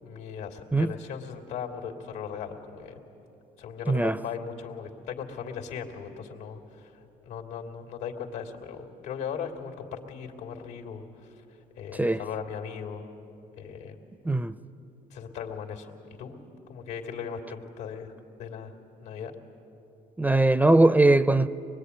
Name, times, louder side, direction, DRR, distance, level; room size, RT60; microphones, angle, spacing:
voice 1, 0.0-3.0 3.6-11.4 11.8-13.0 13.6-14.0 15.1-16.4 16.7-18.7 19.0-19.3, left 7 dB, 85° left, 2.9 m, -38 dB
voice 2, 3.9-4.2 12.0-12.2 14.3-14.6 20.2-21.5, right 2 dB, 10° right, 0.5 m, -20 dB
24.5 x 21.5 x 9.7 m
cardioid pair, 110°, 17 cm